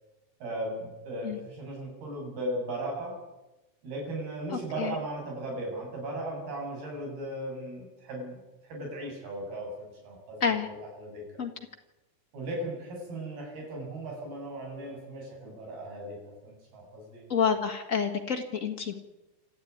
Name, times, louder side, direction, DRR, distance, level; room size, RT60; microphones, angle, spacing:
voice 1, 0.4-3.2 3.8-8.4 8.7-11.2 12.3-17.2, right 1 dB, 65° right, 0 dB, 9.3 m, -37 dB
voice 2, 4.5-5.0 10.4-10.7 11.4-11.5 17.3-18.9, left 6 dB, 65° left, 4 dB, 0.8 m, -28 dB
27.5 x 13.5 x 9.6 m, 1.0 s
omnidirectional pair, 4.8 m